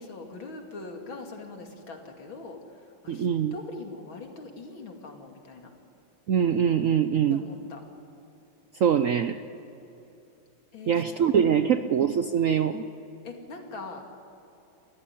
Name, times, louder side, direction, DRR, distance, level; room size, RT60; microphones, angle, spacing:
voice 1, 0.0-2.6 3.0-5.7 7.3-7.8 10.7-11.0 11.5-11.8 13.2-14.0, left 3 dB, 80° left, 2 dB, 3.3 m, -42 dB
voice 2, 3.1-3.5 6.3-7.4 8.8-9.4 10.9-12.8, right 8 dB, 65° right, 9 dB, 0.8 m, -23 dB
29.5 x 14.5 x 10.0 m, 2.9 s
omnidirectional pair, 2.1 m